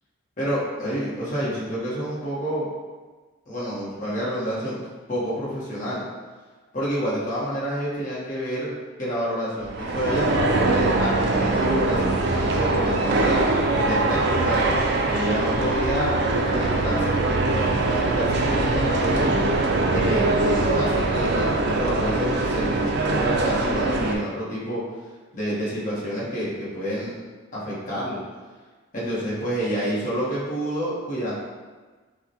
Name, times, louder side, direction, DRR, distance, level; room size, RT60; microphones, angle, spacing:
voice 1, 0.4-2.7 3.5-4.8 5.1-6.0 6.7-8.7 9.0-13.5 13.8-14.6 15.1-19.3 19.9-24.8 25.3-27.1 27.5-28.2 28.9-31.3, equal, 40° left, -7 dB, 1.0 m, -28 dB
sound 1, 9.6-24.1, right 2 dB, 55° right, 0.4 m, -22 dB
5.6 x 2.1 x 2.8 m, 1.3 s
head